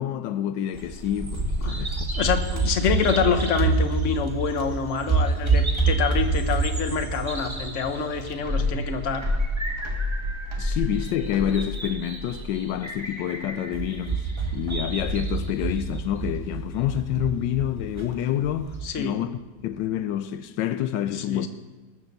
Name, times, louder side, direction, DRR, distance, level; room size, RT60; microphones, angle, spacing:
voice 1, 0.0-2.1 10.6-21.5, left 10 dB, 80° left, 1.3 m, -28 dB
Bird vocalization bird call bird song, 0.7-18.9, right 3 dB, 15° right, 1.4 m, -27 dB
voice 2, 2.2-9.2 18.8-19.1 21.1-21.5, left 6 dB, 45° left, 1.3 m, -26 dB
20.0 x 7.1 x 6.7 m
omnidirectional pair, 1.9 m